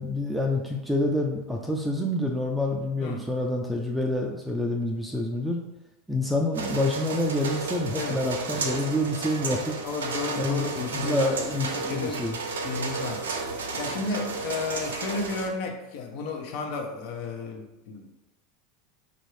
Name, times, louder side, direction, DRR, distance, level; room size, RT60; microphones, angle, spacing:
voice 1, 0.0-5.6 6.1-9.8 10.4-12.4, left 1 dB, 5° right, 0 dB, 0.4 m, -27 dB
sound 1, 6.5-15.5, right 4 dB, 90° right, 0.5 m, -32 dB
voice 2, 9.8-12.2 12.6-13.3 13.8-18.1, left 4 dB, 60° left, 3 dB, 0.7 m, -33 dB
4.6 x 2.5 x 3.2 m, 0.98 s
hypercardioid pair, 100°, 0 cm